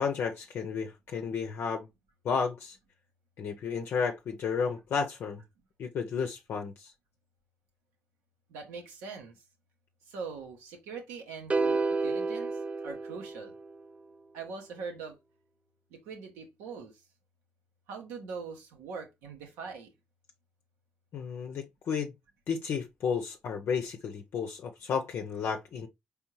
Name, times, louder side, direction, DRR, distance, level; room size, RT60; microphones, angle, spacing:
voice 1, 0.0-1.9 2.2-2.8 3.4-5.4 5.8-6.9 21.1-22.1 22.5-25.9, left 6 dB, 65° left, 0.6 m, -32 dB
voice 2, 8.5-9.4 10.1-13.5 14.3-15.2 15.9-17.0 17.9-19.9, right 5 dB, 85° right, 1.2 m, -42 dB
sound 1, 11.5-13.8, right 3 dB, 30° right, 0.4 m, -30 dB
4.4 x 3.4 x 3.1 m
hypercardioid pair, 45°, 4 cm